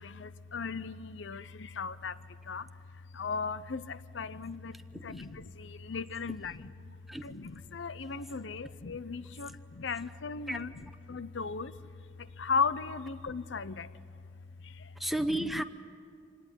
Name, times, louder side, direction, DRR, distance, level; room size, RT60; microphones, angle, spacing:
voice 1, 0.0-2.2 2.5-2.7 3.1-4.8 5.0-6.7 7.2-10.7 11.1-11.7 12.4-13.9 14.6-14.7, left 5 dB, 75° left, 15 dB, 0.7 m, -36 dB
voice 2, 4.7-5.3 6.3-6.4 7.1-7.3 9.5-9.6 10.0-10.1 10.5-10.6 15.0-15.6, right 1 dB, ahead, 8 dB, 0.9 m, -34 dB
26.5 x 19.0 x 10.0 m, 2.3 s
head